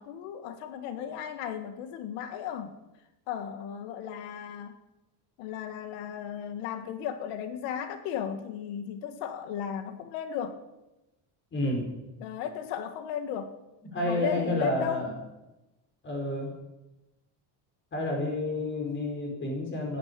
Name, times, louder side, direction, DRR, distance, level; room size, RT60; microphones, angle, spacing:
voice 1, 0.0-2.8 3.3-4.8 5.4-10.6 12.2-13.5 14.0-15.1, left 8 dB, 90° left, 8 dB, 1.7 m, -35 dB
voice 2, 11.5-11.9 13.9-15.1 16.0-16.6 17.9-20.0, left 1 dB, 25° left, 1 dB, 4.8 m, -30 dB
15.0 x 10.5 x 8.9 m, 0.98 s
cardioid pair, 170°, 49 cm